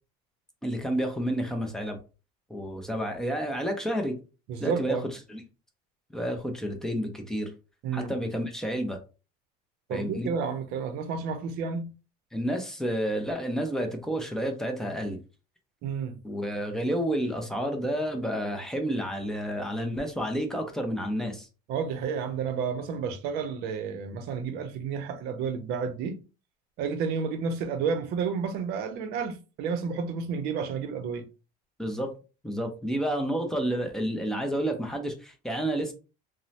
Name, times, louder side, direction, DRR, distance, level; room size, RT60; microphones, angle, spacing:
voice 1, 0.6-2.0 2.5-4.2 4.6-5.0 5.3-5.4 6.1-7.5 7.9-9.0 9.9-10.3 12.3-15.2 16.2-21.5 31.8-32.1 32.4-35.9, equal, 5° left, 0.4 m, -30 dB
voice 2, 4.5-5.0 7.8-8.1 9.9-11.9 15.8-16.2 21.7-26.2 26.8-31.3, right 6 dB, 60° right, 0.6 m, -31 dB
3.0 x 2.0 x 2.7 m
cardioid pair, 150°, 19 cm